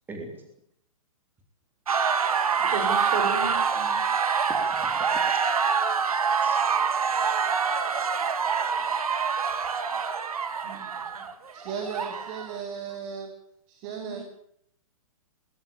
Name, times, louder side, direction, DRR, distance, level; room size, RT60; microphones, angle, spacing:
voice 1, 0.1-0.4 4.5-5.6 6.2-6.6 10.6-10.8, right 2 dB, 10° right, 3 dB, 3.6 m, -41 dB
sound 1, 1.9-12.6, right 6 dB, 80° right, 2.8 m, -26 dB
voice 2, 2.6-4.1 10.6-11.3 13.8-14.2, right 5 dB, 55° right, 6 dB, 7.6 m, -35 dB
voice 3, 11.5-13.3 13.7-14.2, right 6 dB, 35° right, 5 dB, 3.7 m, -36 dB
20.5 x 18.5 x 8.7 m, 0.70 s
hypercardioid pair, 145°, 18 cm